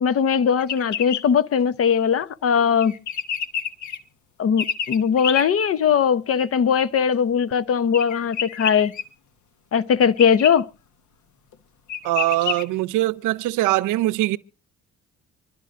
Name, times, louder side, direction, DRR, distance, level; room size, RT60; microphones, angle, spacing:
voice 1, 0.0-2.9 4.4-8.9 9.7-10.7, left 7 dB, 50° left, 0.8 m, -20 dB
sound 1, 0.6-1.2 2.8-4.0 4.6-5.4 7.9-9.0 10.2-10.5 11.5-11.6 11.9-12.6, left 8 dB, 75° left, 1.2 m, -28 dB
voice 2, 12.0-14.4, right 16 dB, 90° right, 0.6 m, -22 dB
25.0 x 12.0 x 2.5 m
cardioid pair, 90°, 30 cm